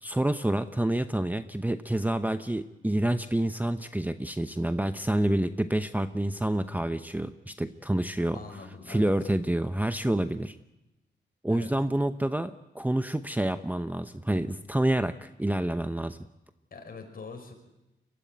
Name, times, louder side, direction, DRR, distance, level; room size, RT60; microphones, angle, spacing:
voice 1, 0.0-8.4 8.9-10.6 11.4-16.2, right 1 dB, 10° right, 10 dB, 0.8 m, -28 dB
voice 2, 8.3-9.1 11.5-11.7 16.7-17.5, left 4 dB, 50° left, 3 dB, 5.9 m, -43 dB
23.5 x 14.5 x 9.3 m, 0.97 s
cardioid pair, 75°, 19 cm